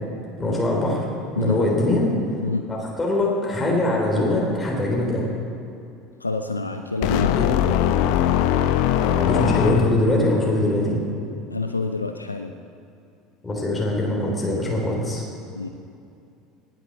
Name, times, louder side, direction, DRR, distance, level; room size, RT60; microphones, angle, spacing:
voice 1, 0.4-1.0 1.3-2.1 2.7-5.3 7.4-7.5 9.0-11.0 13.4-15.2, left 1 dB, 15° left, -2 dB, 3.4 m, -22 dB
voice 2, 6.2-7.4 11.5-12.5 15.6-15.7, left 3 dB, 85° left, 6 dB, 0.5 m, -26 dB
sound 1, 7.0-10.3, left 11 dB, 55° left, 0.7 m, -21 dB
18.5 x 8.4 x 6.7 m, 2.6 s
figure-of-eight pair, 70°, 0 cm